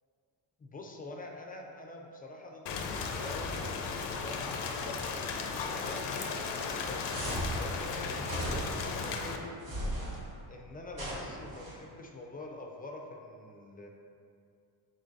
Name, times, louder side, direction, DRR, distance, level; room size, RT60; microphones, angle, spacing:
voice 1, 0.6-5.3 5.6-7.0 7.5-9.6 10.5-13.9, left 2 dB, 20° left, 1 dB, 0.4 m, -45 dB
Rain, 2.7-9.4, left 5 dB, 80° left, 0.5 m, -35 dB
sound 1, 7.1-7.6 8.2-8.9 9.6-10.2 10.9-11.7, right 1 dB, 60° right, 1.2 m, -36 dB
3.8 x 2.6 x 3.7 m, 2.3 s
cardioid pair, 90°, 42 cm